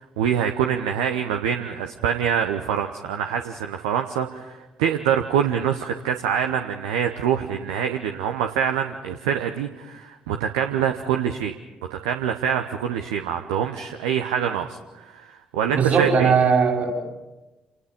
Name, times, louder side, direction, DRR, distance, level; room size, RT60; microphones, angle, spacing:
voice 1, 0.0-11.5 11.9-16.3, right 8 dB, 70° right, 6 dB, 0.9 m, -25 dB
voice 2, 15.7-16.9, right 6 dB, 50° right, 2 dB, 5.5 m, -18 dB
28.5 x 19.5 x 5.3 m, 1.1 s
figure-of-eight pair, 45°, 4 cm